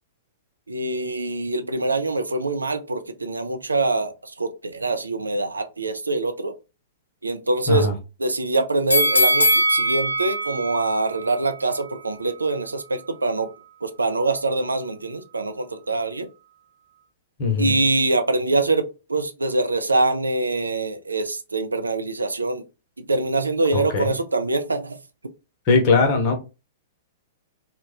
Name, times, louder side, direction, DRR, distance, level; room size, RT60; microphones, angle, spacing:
voice 1, 0.7-6.5 7.2-7.9 8.2-13.5 13.8-16.3 17.6-22.6 23.0-25.0, right 2 dB, 75° right, 0.4 m, -24 dB
sound 1, 8.9-12.0 12.4-12.5, equal, 80° left, 0.6 m, -22 dB
voice 2, 17.4-17.7 23.7-24.1 25.7-26.4, left 4 dB, 40° left, 0.9 m, -19 dB
2.9 x 2.2 x 3.4 m
figure-of-eight pair, 105°, 0 cm